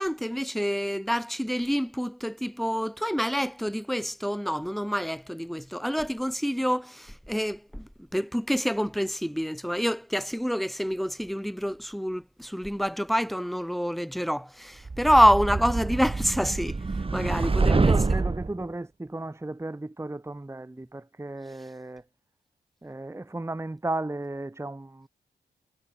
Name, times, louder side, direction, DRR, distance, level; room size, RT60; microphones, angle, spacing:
voice 1, 0.0-16.8 17.1-18.0, equal, ahead, 4.1 m, -27 dB
sound 1, 14.9-18.5, right 3 dB, 35° right, 1.6 m, -26 dB
voice 2, 17.6-22.0 22.8-25.1, right 2 dB, 15° right, 1.4 m, -34 dB
cardioid pair, 65°, 17 cm